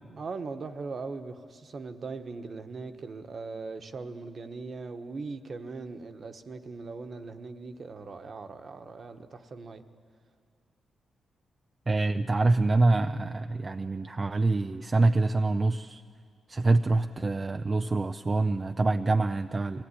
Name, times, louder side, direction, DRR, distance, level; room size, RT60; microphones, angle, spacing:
voice 1, 0.1-9.8, right 4 dB, 50° right, 7 dB, 1.3 m, -40 dB
voice 2, 11.9-16.0 16.5-19.8, right 2 dB, 30° right, 7 dB, 0.5 m, -25 dB
23.0 x 17.0 x 9.9 m, 2.2 s
cardioid pair, 90°, 0 cm